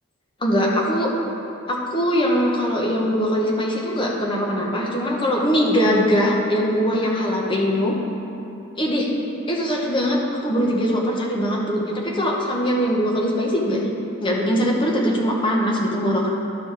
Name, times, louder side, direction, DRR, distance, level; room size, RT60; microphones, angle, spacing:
voice 1, 0.4-1.1 1.7-7.9 8.8-9.1 9.5-13.9 14.2-16.3, equal, 25° left, -2 dB, 1.0 m, -21 dB
12.0 x 5.2 x 4.7 m, 2.9 s
head